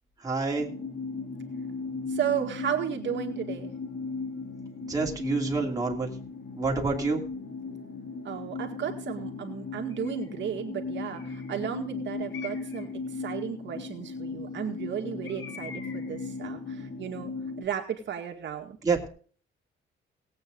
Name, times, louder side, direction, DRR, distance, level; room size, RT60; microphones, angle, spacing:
voice 1, 0.2-0.7 4.9-6.1 6.6-7.2 18.8-19.1, right 4 dB, 15° right, -1 dB, 2.7 m, -27 dB
sound 1, 0.6-17.7, left 4 dB, 45° left, 2.5 m, -37 dB
voice 2, 2.1-3.7 8.2-18.8, right 9 dB, 65° right, 2 dB, 2.0 m, -34 dB
Bird, 9.9-10.4 11.1-11.7 12.3-12.9 15.2-16.2, left 7 dB, 85° left, 3.3 m, -45 dB
18.5 x 8.7 x 3.9 m, 0.42 s
cardioid pair, 145°, 20 cm